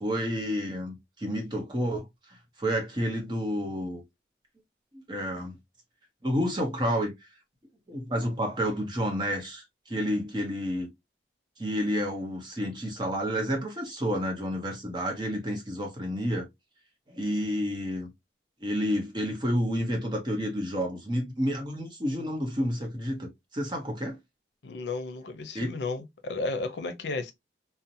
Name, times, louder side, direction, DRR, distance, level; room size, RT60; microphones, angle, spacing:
voice 1, 0.0-2.1 2.6-4.0 5.1-5.5 6.2-7.1 7.9-10.9 11.6-16.5 17.1-18.1 18.6-24.2 25.5-25.7, equal, 25° right, 0.8 m, -30 dB
voice 2, 24.6-27.3, left 3 dB, 80° left, 0.6 m, -33 dB
2.7 x 2.1 x 2.6 m
head